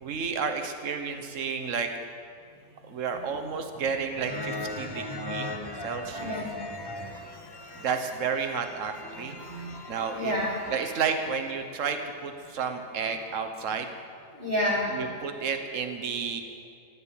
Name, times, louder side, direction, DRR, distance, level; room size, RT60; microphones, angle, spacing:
voice 1, 0.0-1.9 2.9-5.5 5.8-6.3 7.8-9.4 9.9-10.3 10.7-13.9 14.9-16.4, right 6 dB, 60° right, 6 dB, 1.5 m, -31 dB
sound 1, 4.1-11.5, left 1 dB, 20° left, 1.1 m, -39 dB
voice 2, 6.1-6.8 9.2-9.8 10.1-10.7 14.3-15.0, equal, 35° right, -6 dB, 4.6 m, -30 dB
14.5 x 10.5 x 8.9 m, 2.3 s
omnidirectional pair, 1.5 m